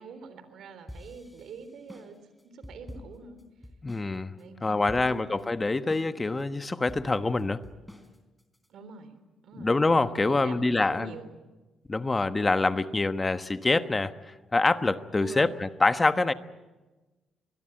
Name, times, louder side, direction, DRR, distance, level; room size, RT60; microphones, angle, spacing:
voice 1, 0.0-2.2 2.4-3.4 4.4-5.4 8.7-9.2 9.4-9.8 10.3-11.3 15.2-15.6, right 5 dB, 70° right, 11 dB, 3.8 m, -45 dB
sound 1, 0.9-4.1 4.4-4.5 4.9-5.4 5.9-6.4 6.9-8.7, left 1 dB, 5° left, 3.7 m, -47 dB
voice 2, 3.8-4.3 4.6-7.6 9.6-11.1 11.9-14.1 14.5-16.3, left 3 dB, 20° left, 11 dB, 1.2 m, -25 dB
24.5 x 21.0 x 9.0 m, 1.2 s
cardioid pair, 90°, 0 cm